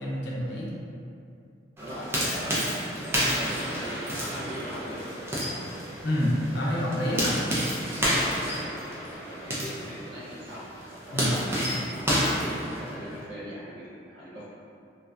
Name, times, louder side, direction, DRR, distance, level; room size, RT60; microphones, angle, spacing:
voice 1, 0.0-0.7 6.0-7.4 11.1-11.3, equal, 75° left, -5 dB, 0.5 m, -27 dB
sound 1, 1.8-13.2, equal, 15° right, 0.4 m, -30 dB
voice 2, 1.8-5.0 7.3-7.5 9.3-10.6 10.9-14.4, equal, 80° right, -8 dB, 0.8 m, -40 dB
2.7 x 2.2 x 2.4 m, 2.5 s
head